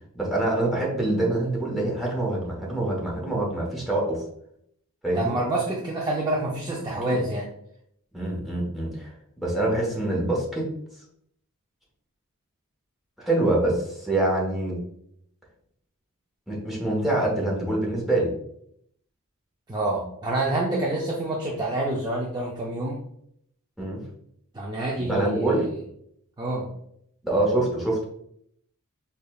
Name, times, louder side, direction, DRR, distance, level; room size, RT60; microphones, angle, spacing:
voice 1, 0.1-4.2 5.0-5.3 7.0-7.2 8.1-9.1 9.4-10.7 13.2-14.8 16.5-18.3 23.8-24.0 25.1-25.8 27.2-28.1, right 2 dB, ahead, -4 dB, 1.0 m, -25 dB
voice 2, 5.1-7.5 19.7-23.0 24.5-25.7 26.4-26.7, right 2 dB, 20° right, -3 dB, 0.4 m, -27 dB
4.9 x 2.3 x 2.3 m, 0.71 s
head